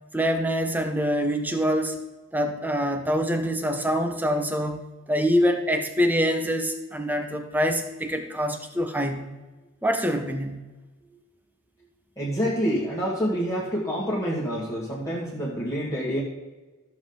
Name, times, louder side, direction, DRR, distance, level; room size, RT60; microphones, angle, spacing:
voice 1, 0.1-2.0 2.3-9.3 9.8-10.6, equal, 10° right, 6 dB, 0.9 m, -25 dB
voice 2, 12.2-16.2, equal, 15° left, -6 dB, 1.8 m, -27 dB
13.5 x 7.3 x 3.9 m, 1.2 s
head